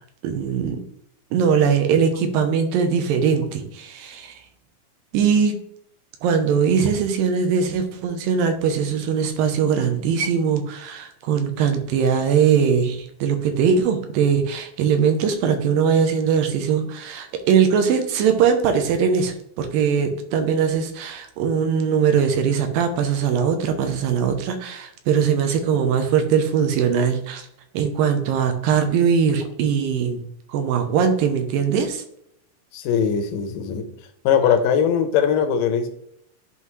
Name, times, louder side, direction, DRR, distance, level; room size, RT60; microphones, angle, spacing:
voice 1, 0.2-0.8 1.3-4.4 5.1-5.6 6.2-27.5 27.7-32.0, right 7 dB, 80° right, 6 dB, 2.4 m, -21 dB
voice 2, 32.7-33.9 34.2-35.9, left 7 dB, 75° left, 5 dB, 2.1 m, -20 dB
11.0 x 3.9 x 3.1 m, 0.73 s
omnidirectional pair, 4.4 m